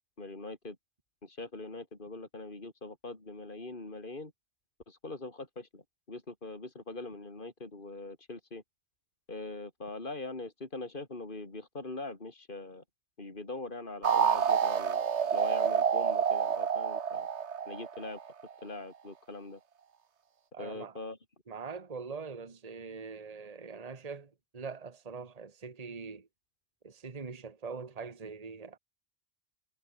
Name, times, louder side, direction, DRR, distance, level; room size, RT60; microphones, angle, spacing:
voice 1, 0.2-0.8 1.2-4.3 4.9-5.8 6.1-8.6 9.3-12.8 13.2-15.0 15.3-17.3 17.7-18.2 18.6-19.6 20.6-21.2, left 2 dB, 50° left, 3.8 m, -42 dB
sound 1, 14.0-18.5, right 7 dB, 80° right, 1.5 m, -28 dB
voice 2, 20.5-21.0 21.5-26.3 26.8-28.8, right 5 dB, 35° right, 1.4 m, -43 dB
omnidirectional pair, 1.1 m